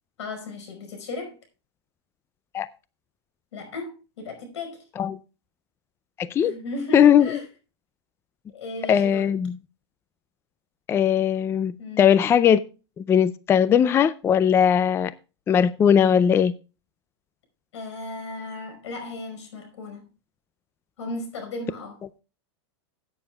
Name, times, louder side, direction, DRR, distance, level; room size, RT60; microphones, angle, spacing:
voice 1, 0.2-1.4 3.5-4.9 6.4-7.4 8.5-9.3 11.8-12.1 17.7-20.1 21.0-22.0, left 2 dB, 85° left, 5.1 m, -36 dB
voice 2, 6.2-6.6 6.9-7.3 8.9-9.5 10.9-12.6 13.0-15.1 15.5-16.5, left 8 dB, 15° left, 0.4 m, -19 dB
16.5 x 9.1 x 2.3 m
supercardioid pair, 140°, 14 cm